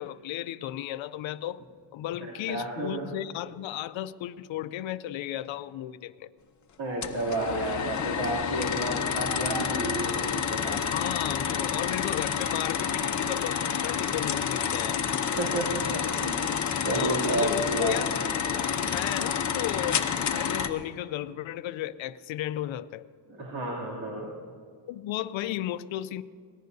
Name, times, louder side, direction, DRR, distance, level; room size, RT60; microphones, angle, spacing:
voice 1, 0.0-1.6 1.9-6.3 10.9-15.0 16.9-18.1 18.5-20.0 20.3-23.0 24.9-26.2, left 13 dB, 80° left, 14 dB, 0.6 m, -34 dB
voice 2, 2.2-3.1 6.8-10.8 15.3-16.5 16.8-18.2 23.3-24.3, right 1 dB, 75° right, -5 dB, 2.9 m, -31 dB
sound 1, 7.0-20.7, left 7 dB, 40° left, 0.8 m, -29 dB
25.0 x 18.5 x 2.7 m, 2.1 s
cardioid pair, 140°, 46 cm